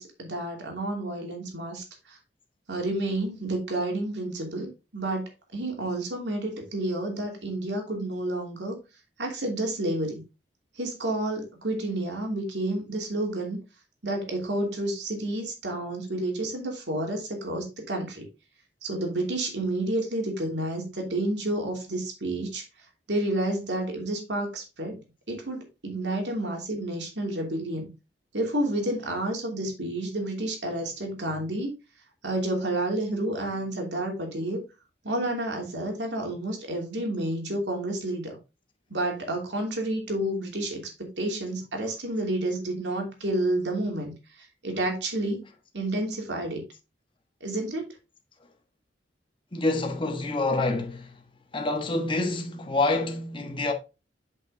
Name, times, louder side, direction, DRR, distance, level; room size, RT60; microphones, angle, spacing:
voice 1, 0.0-2.2 2.7-8.8 9.2-10.2 10.8-13.6 14.0-18.3 18.8-22.6 23.1-25.0 25.3-27.9 28.3-31.7 32.2-34.6 35.0-38.4 38.9-44.1 44.6-45.5 45.7-46.6 47.4-47.9, right 1 dB, 75° right, 2.8 m, -30 dB
voice 2, 49.5-51.2 51.5-53.7, left 2 dB, 30° left, 1.2 m, -27 dB
7.7 x 5.5 x 3.7 m
head